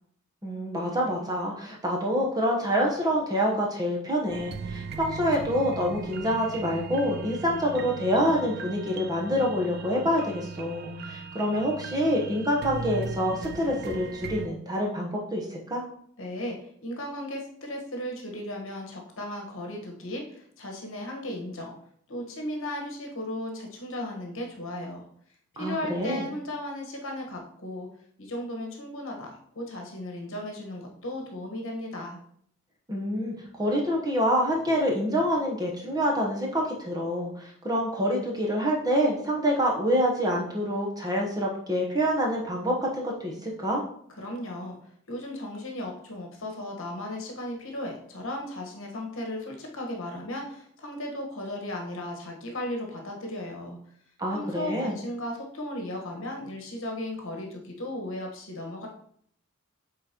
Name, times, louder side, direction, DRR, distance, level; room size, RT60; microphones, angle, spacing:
voice 1, 0.4-15.8 25.6-26.2 32.9-43.8 54.2-55.0, equal, 15° right, -1 dB, 1.0 m, -27 dB
sound 1, 4.3-14.5, right 5 dB, 45° right, 0.3 m, -38 dB
voice 2, 16.2-21.7 22.1-25.1 25.5-27.9 28.2-32.2 44.2-44.8 45.1-53.8 54.3-58.9, left 1 dB, 60° left, 1 dB, 1.3 m, -36 dB
8.5 x 3.9 x 2.9 m, 0.64 s
head